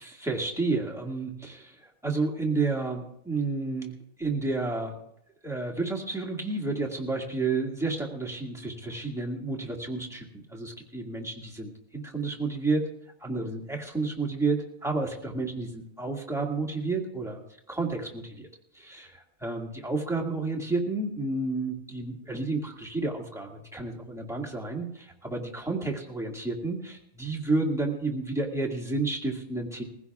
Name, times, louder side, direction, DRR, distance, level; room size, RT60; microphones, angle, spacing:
voice 1, 0.0-5.0 5.4-12.9 13.2-17.4 17.7-18.5 18.7-29.8, right 3 dB, ahead, -2 dB, 1.9 m, -31 dB
21.5 x 15.5 x 2.4 m, 0.77 s
omnidirectional pair, 1.5 m